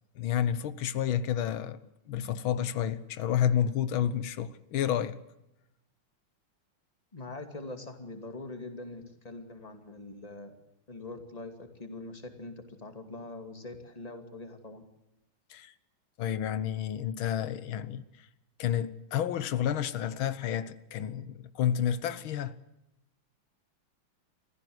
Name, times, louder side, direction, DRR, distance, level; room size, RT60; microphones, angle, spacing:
voice 1, 0.2-1.8 2.1-5.2 15.5-15.7 16.2-18.3 18.6-22.6, left 9 dB, 90° left, 1.8 m, -30 dB
voice 2, 7.1-10.6 10.9-14.8, left 2 dB, 20° left, 2.5 m, -43 dB
25.5 x 15.5 x 7.9 m
omnidirectional pair, 2.2 m